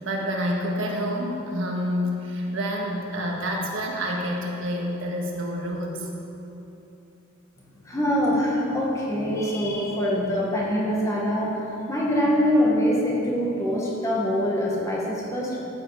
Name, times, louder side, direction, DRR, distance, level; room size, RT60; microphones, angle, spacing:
voice 1, 0.0-6.1, equal, 65° right, -1 dB, 1.7 m, -28 dB
voice 2, 7.9-15.6, equal, 15° left, -5 dB, 1.8 m, -24 dB
14.0 x 7.9 x 5.0 m, 3.0 s
head